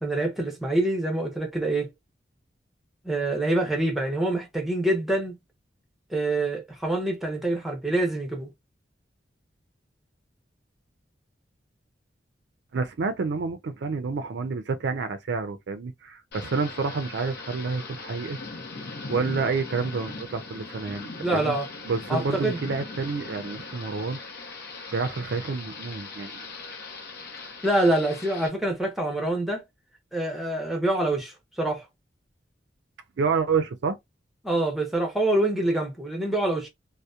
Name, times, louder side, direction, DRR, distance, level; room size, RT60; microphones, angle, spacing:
voice 1, 0.0-1.9 3.0-5.4 6.1-8.5 21.2-21.7 22.1-22.6 27.4-29.6 30.1-31.8 34.4-36.7, right 1 dB, ahead, 0.7 m, -26 dB
voice 2, 12.7-18.4 19.1-21.6 21.8-24.2 24.9-26.5 33.2-34.0, right 4 dB, 65° right, 0.4 m, -29 dB
Thunder / Rain, 16.3-28.5, left 3 dB, 60° left, 0.7 m, -40 dB
2.7 x 2.0 x 2.3 m
head